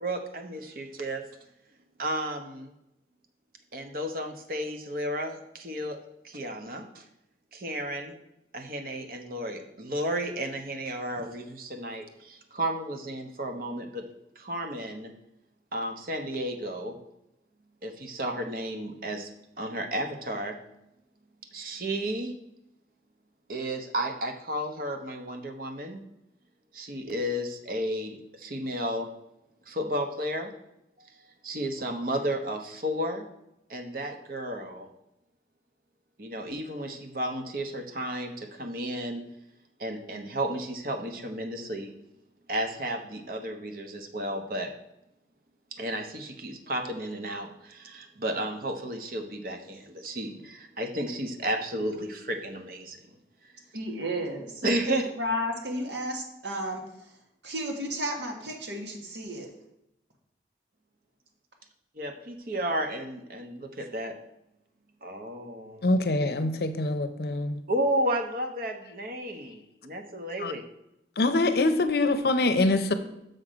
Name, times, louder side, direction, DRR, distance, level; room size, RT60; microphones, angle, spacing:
voice 1, 0.0-1.2 2.0-2.7 3.7-6.0 6.2-7.0 7.5-8.1 8.5-14.0 14.4-15.1 15.7-17.0 17.8-19.3 19.6-20.6 21.5-22.4 23.5-26.0 26.7-29.1 29.7-30.5 31.0-33.3 33.7-34.9 36.2-39.2 39.8-41.9 42.5-44.7 45.7-53.0 54.6-55.1 61.9-64.1 65.0-65.8 67.7-70.6, right 1 dB, 50° right, 4 dB, 0.9 m, -33 dB
voice 2, 53.7-56.8 57.4-59.5, equal, 80° right, 2 dB, 1.5 m, -33 dB
voice 3, 65.8-67.6 70.4-70.5 71.2-72.9, left 2 dB, 60° left, 10 dB, 0.6 m, -24 dB
6.5 x 5.9 x 5.0 m, 0.83 s
head